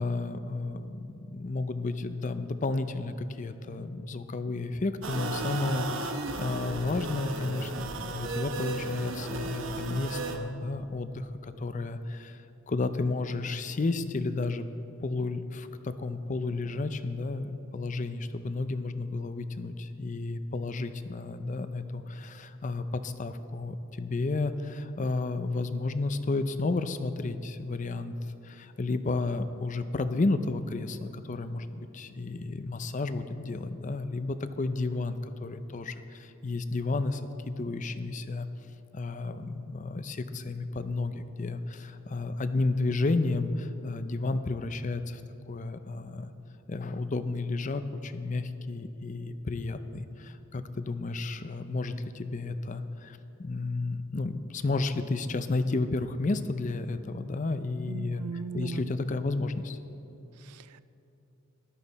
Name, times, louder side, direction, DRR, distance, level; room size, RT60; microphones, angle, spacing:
voice 1, 0.0-6.1 6.4-14.7 15.0-28.1 28.4-38.5 38.9-45.2 45.5-46.3 46.7-58.2 58.5-59.8, left 3 dB, 35° left, 11 dB, 0.5 m, -32 dB
sound 1, 5.0-10.4, right 3 dB, 60° right, 1.0 m, -35 dB
voice 2, 57.9-58.9 60.3-60.8, right 5 dB, 90° right, 15 dB, 0.4 m, -39 dB
14.0 x 11.5 x 4.1 m, 3.0 s
head